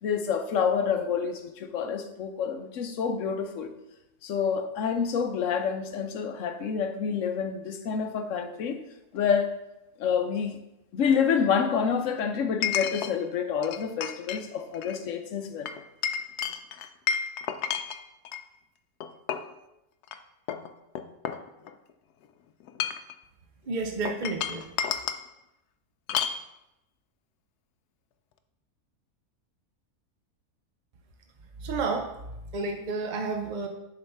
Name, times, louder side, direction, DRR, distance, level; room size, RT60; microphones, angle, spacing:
voice 1, 0.0-3.7 4.2-8.8 9.1-9.5 10.0-10.6 10.9-15.7, left 6 dB, 60° left, 7 dB, 1.0 m, -28 dB
Chink clink, 9.2-9.3 12.6-13.1 13.6-14.4 14.7-15.0 15.7-18.4 19.0-19.5 20.0-20.2 20.5-21.9 22.6-23.1 24.0-25.2 26.1-26.4, left 8 dB, 90° left, 1.1 m, -31 dB
voice 2, 23.7-24.7 31.6-32.1 32.5-33.7, right 3 dB, 55° right, 4 dB, 0.5 m, -30 dB
7.6 x 4.0 x 5.5 m, 0.91 s
omnidirectional pair, 1.6 m